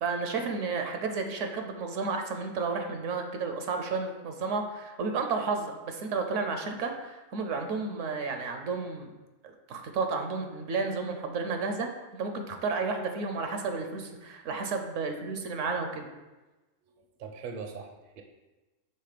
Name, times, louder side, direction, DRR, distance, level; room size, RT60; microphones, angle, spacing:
voice 1, 0.0-9.1 9.4-16.1, right 4 dB, 70° right, 5 dB, 1.0 m, -32 dB
voice 2, 16.9-18.2, right 5 dB, 55° right, 4 dB, 0.7 m, -42 dB
5.6 x 3.5 x 5.0 m, 1.1 s
omnidirectional pair, 1.4 m